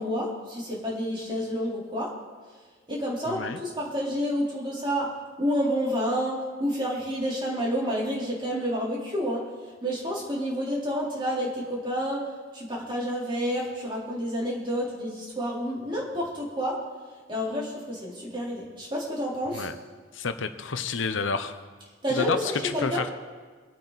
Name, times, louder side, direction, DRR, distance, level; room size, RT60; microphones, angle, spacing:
voice 1, 0.0-2.1 2.9-5.1 5.4-12.2 12.5-16.8 17.3-19.7 22.0-23.0, equal, 25° right, -5 dB, 3.9 m, -29 dB
voice 2, 3.3-3.6 19.5-19.7 20.1-21.6 22.1-23.1, left 4 dB, 85° left, 10 dB, 0.8 m, -29 dB
24.5 x 8.7 x 4.1 m, 1.4 s
head